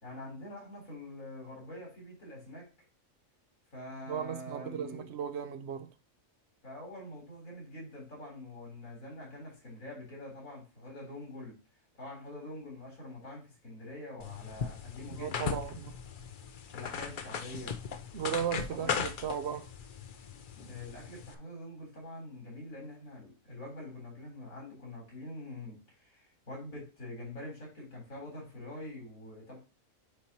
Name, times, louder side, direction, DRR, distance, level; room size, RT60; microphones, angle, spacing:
voice 1, 0.0-2.7 3.7-5.1 6.6-11.5 12.0-15.6 16.7-17.7 18.7-19.0 20.5-29.6, left 1 dB, 90° left, 4.1 m, -45 dB
voice 2, 4.1-5.9 15.1-15.9 18.1-19.7, right 8 dB, 60° right, 0.8 m, -36 dB
sound 1, 14.2-21.4, left 6 dB, 50° left, 0.6 m, -38 dB
9.2 x 4.4 x 2.9 m
omnidirectional pair, 1.4 m